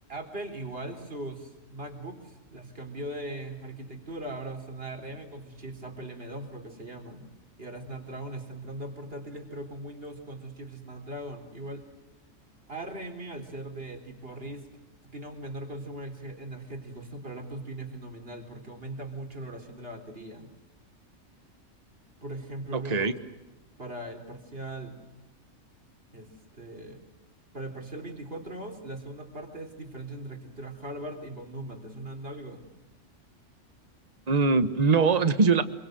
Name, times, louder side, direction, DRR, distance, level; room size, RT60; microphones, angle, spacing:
voice 1, 0.1-7.3 7.6-11.9 12.7-14.7 15.1-20.5 22.2-23.2 23.8-25.0 26.1-27.0 27.5-32.6, right 1 dB, 50° right, 5 dB, 4.1 m, -39 dB
voice 2, 22.7-23.1 34.3-35.6, right 4 dB, 35° right, 12 dB, 1.3 m, -22 dB
27.0 x 24.0 x 7.9 m, 1.0 s
omnidirectional pair, 1.3 m